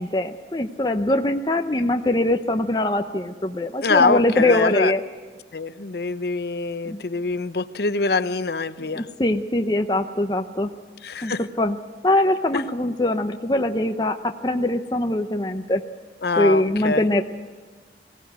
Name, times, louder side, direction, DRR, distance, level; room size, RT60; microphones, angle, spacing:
voice 1, 0.0-5.0 6.8-7.0 8.8-10.7 11.2-11.8 12.0-15.8 16.4-17.2, left 1 dB, 25° left, 5 dB, 0.7 m, -22 dB
voice 2, 3.8-4.9 5.5-9.0 11.0-11.4 12.5-12.6 16.2-17.0, left 4 dB, 65° left, 13 dB, 0.7 m, -24 dB
19.5 x 16.5 x 8.1 m, 1.5 s
head